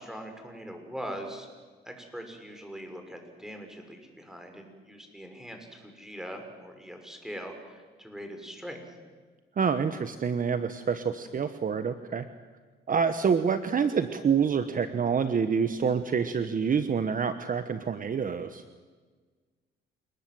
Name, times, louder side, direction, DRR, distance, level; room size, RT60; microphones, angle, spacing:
voice 1, 0.0-1.5 1.8-8.9, equal, ahead, 4 dB, 5.9 m, -42 dB
voice 2, 9.6-12.2 12.9-18.6, right 6 dB, 45° right, 10 dB, 1.3 m, -27 dB
28.5 x 19.5 x 7.9 m, 1.4 s
cardioid pair, 90°, 20 cm